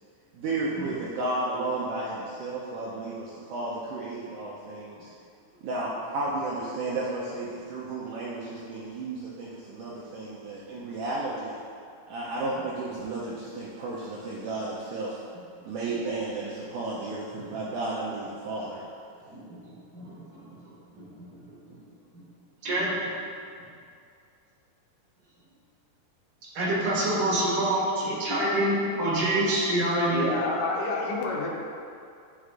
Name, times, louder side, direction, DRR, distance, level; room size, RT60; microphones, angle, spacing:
voice 1, 0.3-5.1 5.6-11.6 12.1-15.2 15.6-18.8, right 2 dB, 90° right, -5 dB, 1.8 m, -33 dB
voice 2, 19.9-20.6 21.0-21.3 21.6-21.7 22.6-23.2 26.5-30.3, right 1 dB, 60° right, -7 dB, 3.2 m, -26 dB
voice 3, 30.1-31.5, left 3 dB, 70° left, -3 dB, 2.0 m, -29 dB
10.0 x 6.2 x 2.5 m, 2.4 s
omnidirectional pair, 4.5 m